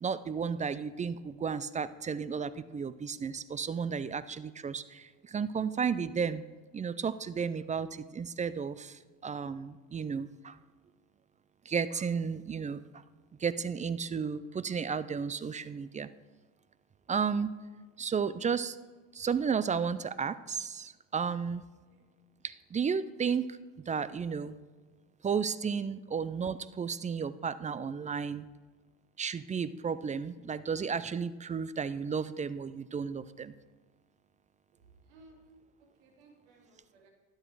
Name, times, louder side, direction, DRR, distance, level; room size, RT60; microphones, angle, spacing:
voice 1, 0.0-6.4 6.7-10.6 11.7-13.0 13.4-16.1 17.1-17.5 18.0-18.8 19.1-21.6 22.4-23.6 23.9-24.6 25.2-28.5 29.2-33.5, right 6 dB, 20° right, 16 dB, 0.4 m, -33 dB
voice 2, 34.7-37.1, right 2 dB, 80° right, 2 dB, 2.3 m, -60 dB
12.0 x 7.9 x 4.7 m, 1.3 s
hypercardioid pair, 70°, 41 cm